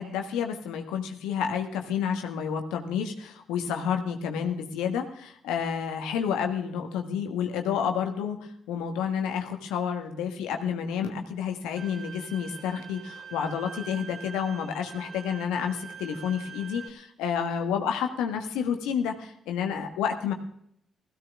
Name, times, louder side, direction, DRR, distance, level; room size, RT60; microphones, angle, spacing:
voice 1, 0.0-20.3, left 7 dB, 80° left, 5 dB, 1.4 m, -30 dB
Bowed string instrument, 11.8-16.9, right 6 dB, 55° right, 2.5 m, -44 dB
17.0 x 15.5 x 3.6 m, 0.68 s
hypercardioid pair, 45°, 0 cm